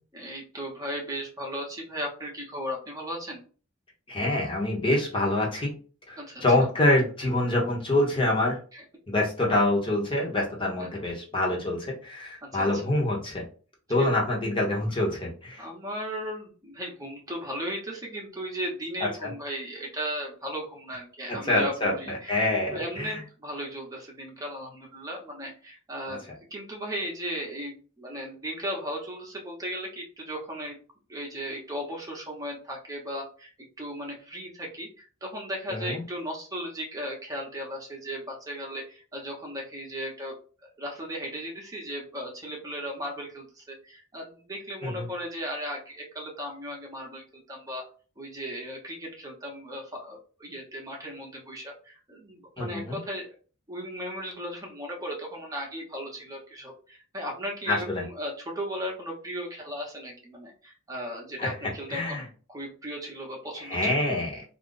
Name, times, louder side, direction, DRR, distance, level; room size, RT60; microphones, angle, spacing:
voice 1, 0.1-3.4 6.1-6.7 8.7-8.8 10.8-10.9 12.4-12.8 14.0-14.1 15.6-22.4 22.7-26.2 26.5-30.8 31.1-33.5 33.8-40.4 40.6-47.8 48.2-53.4 53.7-64.0, equal, 15° right, -1 dB, 0.8 m, -36 dB
voice 2, 4.1-5.7 6.1-8.6 9.1-13.4 13.9-15.6 19.0-19.3 21.3-23.2 26.1-26.2 35.7-36.0 44.8-45.1 52.6-53.0 57.7-58.0 61.4-61.5 61.9-62.2 63.6-64.4, left 1 dB, 25° left, -2 dB, 1.0 m, -26 dB
2.5 x 2.3 x 3.7 m, 0.38 s
head